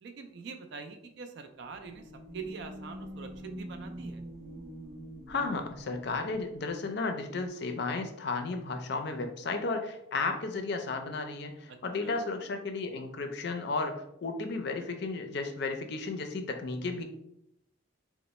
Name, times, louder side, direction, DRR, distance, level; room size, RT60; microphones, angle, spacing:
voice 1, 0.0-4.2 11.7-12.2, right 5 dB, 55° right, 6 dB, 0.3 m, -44 dB
sound 1, 1.7-6.4, equal, 90° right, 0.7 m, -45 dB
voice 2, 5.3-17.0, left 3 dB, 55° left, 6 dB, 0.4 m, -34 dB
2.9 x 2.1 x 4.1 m, 0.77 s
head